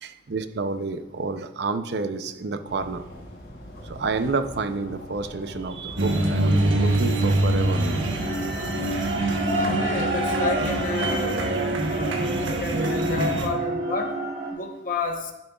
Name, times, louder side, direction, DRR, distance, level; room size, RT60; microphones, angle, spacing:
voice 1, 0.0-3.0 3.8-7.8 11.9-12.0, right 4 dB, 60° right, 10 dB, 0.5 m, -29 dB
sound 1, 2.7-9.5, equal, 85° left, 3.6 m, -42 dB
sound 2, 6.0-13.5, right 1 dB, 85° right, 1.2 m, -24 dB
sound 3, 8.2-14.5, right 2 dB, 35° right, 1.4 m, -31 dB
voice 2, 9.5-11.4 11.9-14.2 14.5-15.3, left 3 dB, 45° left, 4 dB, 0.9 m, -31 dB
10.5 x 10.0 x 2.4 m, 0.98 s
head